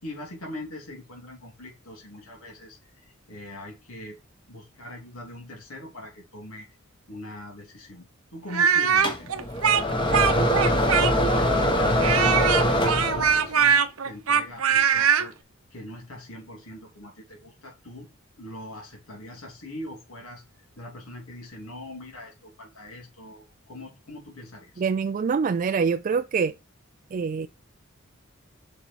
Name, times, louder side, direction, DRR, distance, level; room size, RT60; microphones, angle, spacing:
voice 1, 0.0-4.2 4.5-6.7 7.1-8.1 8.3-9.3 9.9-10.5 11.2-12.1 12.6-15.3 15.7-18.1 18.4-20.4 20.8-24.8, left 1 dB, 85° left, 3.0 m, -42 dB
Speech, 8.5-11.4 12.0-15.3, right 7 dB, 90° right, 0.9 m, -21 dB
sound 1, 9.0-13.5, equal, 25° left, 1.2 m, -23 dB
voice 2, 24.8-26.5 27.1-27.5, right 5 dB, 40° right, 0.3 m, -25 dB
6.7 x 5.4 x 4.6 m
head